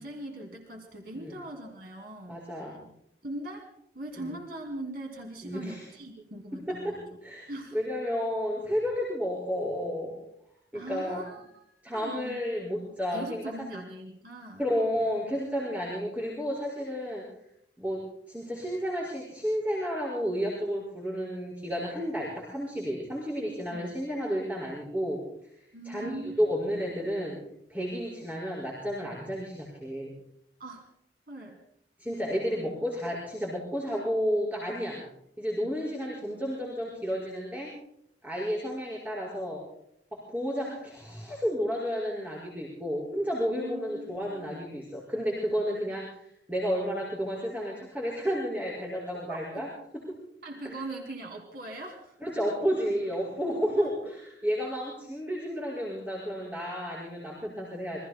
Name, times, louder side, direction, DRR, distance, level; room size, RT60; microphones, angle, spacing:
voice 1, 0.0-2.4 3.2-7.0 7.5-7.8 10.7-12.4 13.1-14.6 23.7-24.0 25.7-26.4 30.6-30.8 31.3-31.6 43.6-44.7 49.3-49.6 50.4-52.2 53.8-53.9, right 1 dB, 60° right, 2 dB, 2.4 m, -41 dB
voice 2, 2.3-2.8 4.2-4.3 5.4-5.9 6.7-7.0 7.2-10.2 10.7-11.2 11.8-13.8 14.6-17.2 17.8-18.0 18.3-25.2 25.8-27.4 27.7-30.1 32.0-35.0 35.4-37.7 38.2-39.6 40.1-46.2 46.5-49.7 49.9-50.0 50.6-50.7 52.2-54.1 54.4-58.0, equal, 10° right, -5 dB, 5.1 m, -31 dB
27.5 x 23.0 x 2.2 m, 0.72 s
head